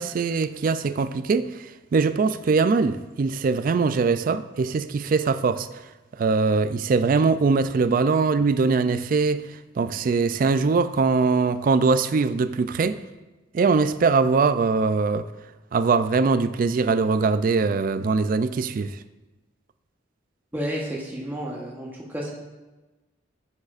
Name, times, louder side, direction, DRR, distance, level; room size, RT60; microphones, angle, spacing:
voice 1, 0.0-1.5 1.9-5.7 6.2-9.5 9.8-13.0 13.5-15.3 15.7-18.9, right 4 dB, 45° right, 0.3 m, -22 dB
voice 2, 20.5-22.3, equal, 10° right, 1.0 m, -31 dB
9.5 x 6.5 x 2.5 m
head